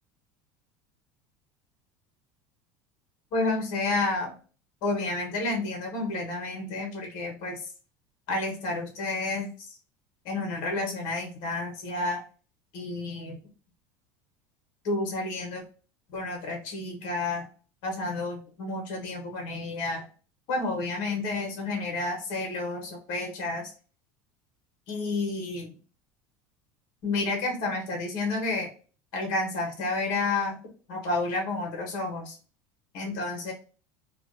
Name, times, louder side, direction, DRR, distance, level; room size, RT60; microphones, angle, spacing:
voice 1, 3.3-4.3 4.8-7.7 8.3-9.8 10.2-12.2 12.7-13.3 14.8-15.6 16.1-17.5 17.8-20.1 20.5-23.7 24.9-25.7 27.0-28.7 29.1-30.6 30.9-32.4 32.9-33.5, left 2 dB, 65° left, 1 dB, 1.0 m, -30 dB
2.4 x 2.2 x 2.5 m, 0.38 s
supercardioid pair, 125°, 9 cm